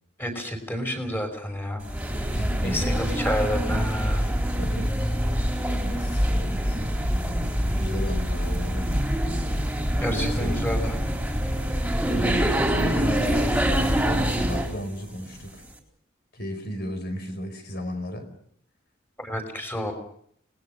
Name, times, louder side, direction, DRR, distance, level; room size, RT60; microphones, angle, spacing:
voice 1, 0.2-1.8 2.6-4.3 10.0-10.9 19.2-19.9, equal, 10° left, 6 dB, 5.3 m, -29 dB
sound 1, 1.8-14.8, equal, 5° right, 4.1 m, -25 dB
voice 2, 2.3-3.0 4.6-4.9 6.0-6.4 7.6-8.9 10.1-10.6 12.1-15.6 16.3-18.3, equal, 55° left, 8 dB, 4.9 m, -34 dB
29.5 x 20.5 x 6.6 m, 0.65 s
head